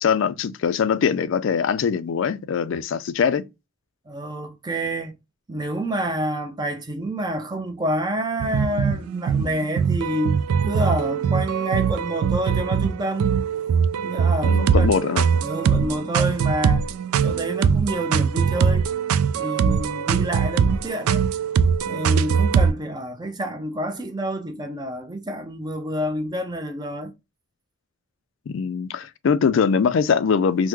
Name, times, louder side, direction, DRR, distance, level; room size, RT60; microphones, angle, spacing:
voice 1, 0.0-3.4 14.4-15.4 28.5-30.7, left 6 dB, 60° left, 0.3 m, -22 dB
voice 2, 4.1-5.2 5.5-10.3 10.6-13.4 14.0-15.2 15.4-16.8 17.2-18.9 19.4-21.3 21.9-27.1, right 1 dB, 20° right, 0.4 m, -28 dB
sound 1, 8.4-22.7, right 6 dB, 90° right, 0.3 m, -22 dB
3.5 x 2.1 x 2.9 m
head